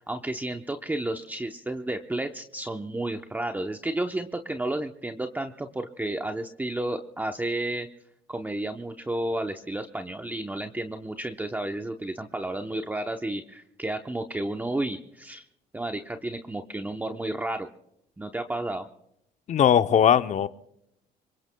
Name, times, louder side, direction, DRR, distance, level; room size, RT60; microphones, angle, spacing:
voice 1, 0.0-7.9 8.3-15.4 15.7-17.7 18.2-18.9, right 1 dB, 10° right, 5 dB, 0.8 m, -32 dB
voice 2, 19.5-20.5, left 9 dB, 45° left, 12 dB, 0.7 m, -19 dB
26.0 x 23.0 x 2.3 m, 0.79 s
cardioid pair, 110°, 17 cm